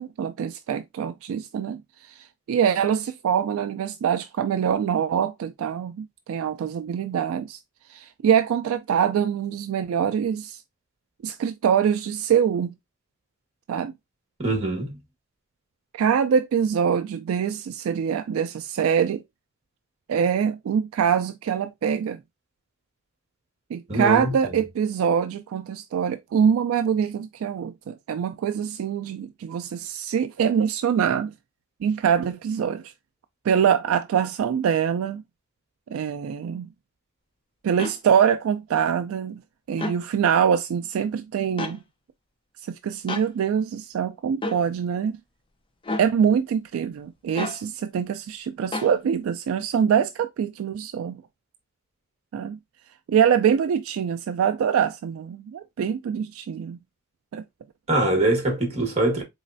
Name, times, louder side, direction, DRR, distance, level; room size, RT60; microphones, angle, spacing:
voice 1, 0.0-7.6 7.9-10.6 11.2-12.7 13.7-13.9 15.9-19.2 20.1-22.2 23.7-31.3 31.8-32.8 33.4-35.2 35.9-36.7 37.6-39.4 39.7-41.8 42.6-45.2 46.0-51.2 52.3-52.6 53.1-56.8 57.3-57.4, right 8 dB, 70° right, 0.3 m, -24 dB
voice 2, 14.4-15.0 23.9-24.3 57.9-59.2, right 2 dB, 30° right, 1.5 m, -23 dB
sound 1, 37.8-38.0 39.7-40.0 41.6-41.8 43.1-43.3 44.4-44.6 45.8-46.1 47.3-47.6 48.7-48.9, left 2 dB, 25° left, 0.5 m, -30 dB
4.1 x 3.1 x 2.5 m
head